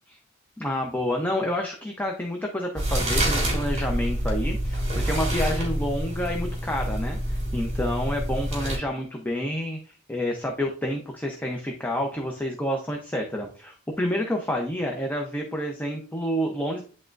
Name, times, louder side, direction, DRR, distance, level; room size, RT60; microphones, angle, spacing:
voice 1, 0.6-16.8, equal, 10° left, 1 dB, 0.8 m, -29 dB
sound 1, 2.7-8.8, right 1 dB, 35° right, 2.7 m, -27 dB
10.0 x 3.6 x 2.6 m, 0.40 s
head